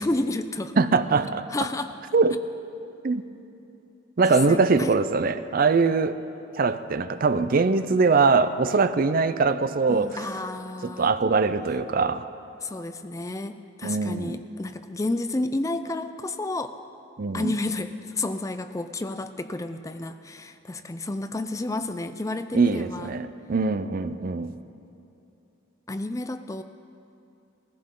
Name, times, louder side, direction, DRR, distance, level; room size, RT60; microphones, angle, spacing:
voice 1, 0.0-0.8 1.5-1.9 4.3-5.0 9.9-11.1 12.6-16.8 17.3-23.1 25.9-26.6, left 2 dB, 15° left, 10 dB, 0.4 m, -31 dB
voice 2, 0.8-1.5 2.1-2.4 3.0-3.2 4.2-6.2 6.6-10.2 10.8-12.3 13.8-14.4 17.2-17.5 22.5-24.6, right 4 dB, 45° right, 12 dB, 0.5 m, -22 dB
19.5 x 15.0 x 3.8 m, 2.8 s
head